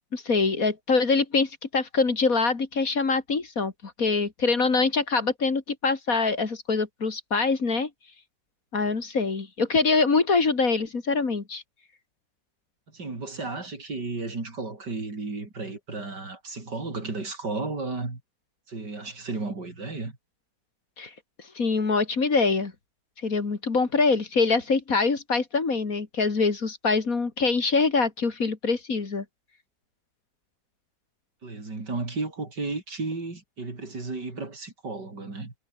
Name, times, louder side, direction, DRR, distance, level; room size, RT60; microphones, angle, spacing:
voice 1, 0.1-7.9 8.7-11.6 21.0-21.1 21.5-22.7 23.2-29.2, left 4 dB, 50° left, 2.8 m, -24 dB
voice 2, 12.9-18.2 18.7-20.2 31.4-35.5, right 3 dB, 70° right, 5.3 m, -33 dB
omnidirectional pair, 1.9 m